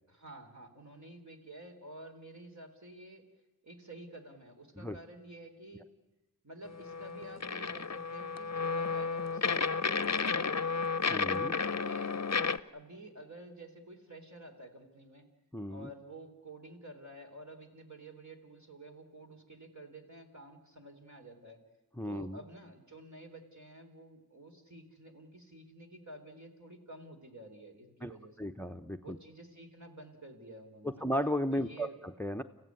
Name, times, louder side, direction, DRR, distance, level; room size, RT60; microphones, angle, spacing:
voice 1, 0.1-3.2 3.6-5.8 6.4-10.8 11.5-12.4 12.7-15.3 15.7-21.6 22.1-28.5 29.0-31.1 31.5-32.0, right 1 dB, 50° right, 3 dB, 3.9 m, -51 dB
sound 1, 6.6-12.6, left 5 dB, 45° left, 0.7 m, -32 dB
voice 2, 11.1-11.5 15.5-15.9 22.0-22.4 28.0-28.1 28.4-29.2 31.0-32.4, equal, 5° left, 9 dB, 0.8 m, -35 dB
29.5 x 15.5 x 9.6 m, 1.1 s
wide cardioid pair, 45°, 36 cm